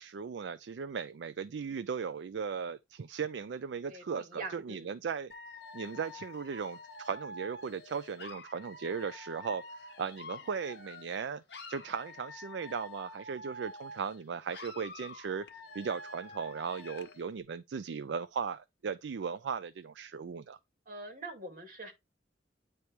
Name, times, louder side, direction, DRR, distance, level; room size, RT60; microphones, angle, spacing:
voice 1, 0.0-5.3 5.7-11.4 11.7-20.6, right 6 dB, 75° right, 0.4 m, -37 dB
voice 2, 3.9-4.9 20.9-21.9, right 2 dB, 50° right, 2.4 m, -43 dB
Dog / Alarm, 5.3-11.2 11.5-14.2 14.5-17.2, left 2 dB, 70° left, 1.4 m, -48 dB
9.5 x 3.4 x 4.5 m
head